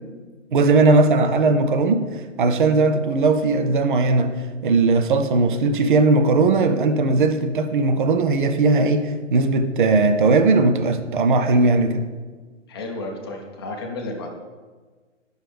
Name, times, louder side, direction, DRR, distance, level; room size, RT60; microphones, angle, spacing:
voice 1, 0.5-2.0 2.4-4.3 4.6-12.0, right 3 dB, 45° right, 7 dB, 0.6 m, -18 dB
voice 2, 12.7-14.3, left 2 dB, 20° left, 1 dB, 0.7 m, -32 dB
9.5 x 6.3 x 3.4 m, 1.4 s
hypercardioid pair, 160°, 37 cm